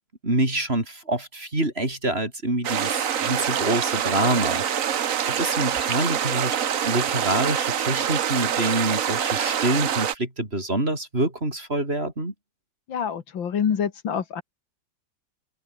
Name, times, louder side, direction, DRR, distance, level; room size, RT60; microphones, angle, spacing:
voice 1, 0.2-6.6 6.8-12.3, right 1 dB, 30° right, 5.7 m, -26 dB
sound 1, 2.6-10.1, right 9 dB, 50° right, 1.3 m, -25 dB
voice 2, 12.9-14.4, left 7 dB, 85° left, 2.5 m, -26 dB
omnidirectional pair, 2.0 m